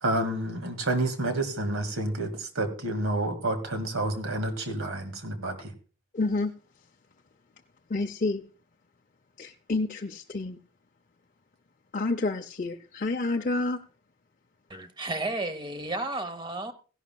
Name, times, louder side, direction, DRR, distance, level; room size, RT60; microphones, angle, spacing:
voice 1, 0.0-5.7, right 2 dB, 80° right, 2.1 m, -29 dB
voice 2, 6.1-6.5 7.9-8.4 9.4-10.6 11.9-13.8, left 3 dB, 40° left, 0.5 m, -29 dB
voice 3, 14.7-16.7, right 2 dB, 20° right, 0.9 m, -32 dB
16.5 x 11.5 x 2.3 m
head